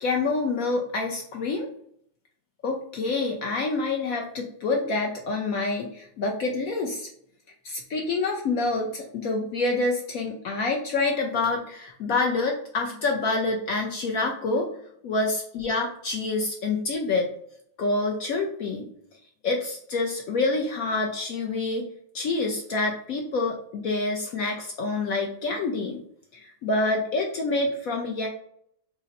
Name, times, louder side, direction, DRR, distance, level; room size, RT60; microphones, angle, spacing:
voice 1, 0.0-1.7 2.6-7.1 7.6-14.7 15.0-17.3 17.8-18.9 19.4-21.9 22.1-26.0 26.3-28.3, left 3 dB, 65° left, 1 dB, 0.9 m, -27 dB
4.1 x 2.5 x 4.0 m, 0.66 s
omnidirectional pair, 2.0 m